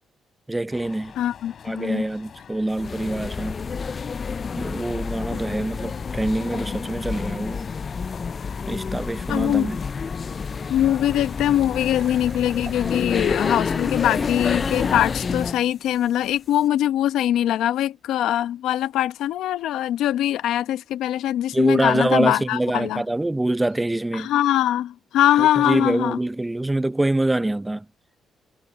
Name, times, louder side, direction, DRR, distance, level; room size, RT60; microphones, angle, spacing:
voice 1, 0.5-1.1 1.6-3.6 4.6-7.6 8.7-9.8 21.5-24.3 25.4-27.8, right 2 dB, 10° right, 0.6 m, -25 dB
sound 1, 0.7-12.3, left 7 dB, 55° left, 4.1 m, -44 dB
voice 2, 1.2-2.1 9.3-9.7 10.7-23.0 24.1-26.2, left 12 dB, 85° left, 1.1 m, -22 dB
sound 2, 2.7-15.7, left 5 dB, 40° left, 0.4 m, -29 dB
sound 3, 10.3-10.4 10.6-10.7 10.9-15.1, right 6 dB, 50° right, 2.7 m, -46 dB
cardioid pair, 90°, 0 cm